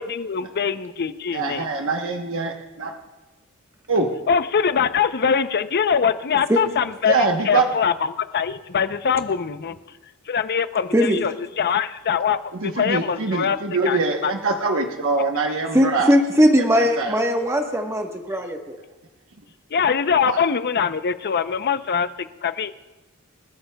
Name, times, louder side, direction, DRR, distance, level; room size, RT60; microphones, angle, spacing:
voice 1, 0.0-1.7 4.3-9.8 10.3-13.6 13.9-14.3 19.7-22.7, left 6 dB, 45° left, 12 dB, 0.6 m, -23 dB
voice 2, 1.3-2.5 2.8-2.9 3.9-4.1 7.1-7.6 12.5-16.1 16.6-17.2 20.2-20.4, right 3 dB, 60° right, 3 dB, 1.0 m, -23 dB
voice 3, 15.7-18.8, equal, 15° right, 2 dB, 1.1 m, -19 dB
28.0 x 13.0 x 2.3 m, 1.1 s
head